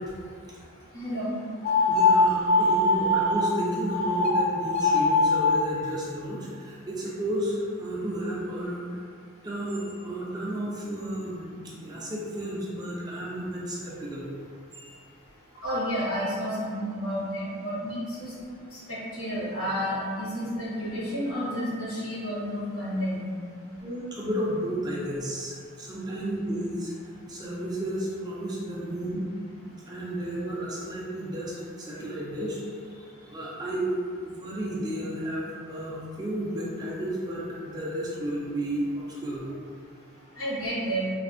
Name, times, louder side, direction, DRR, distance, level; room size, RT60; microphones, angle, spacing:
voice 1, 0.9-1.4 15.6-18.3 18.7-23.2 40.4-41.1, equal, 80° left, -9 dB, 1.2 m, -31 dB
sound 1, 1.6-3.4 3.9-4.3 4.6-5.5, left 2 dB, 35° left, 0.5 m, -22 dB
voice 2, 1.9-9.0 9.4-14.3 14.7-15.0 23.8-26.9 27.3-29.3 29.9-33.9 34.2-39.5, right 1 dB, 20° right, -6 dB, 0.4 m, -32 dB
3.2 x 2.0 x 2.5 m, 2.2 s
head